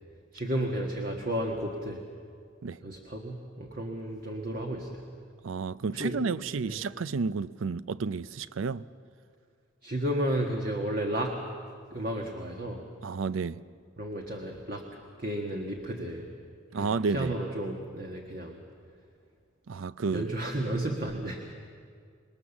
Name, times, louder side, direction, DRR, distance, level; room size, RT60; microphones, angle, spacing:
voice 1, 0.3-2.0 2.8-5.0 5.9-6.2 6.6-6.8 9.8-11.4 11.9-12.9 14.0-16.3 16.7-18.6 20.1-21.5, right 1 dB, 45° right, 1.6 m, -33 dB
voice 2, 5.4-8.9 13.0-13.6 16.7-17.4 19.7-20.3, right 4 dB, 75° right, 0.5 m, -31 dB
26.5 x 20.5 x 7.1 m
head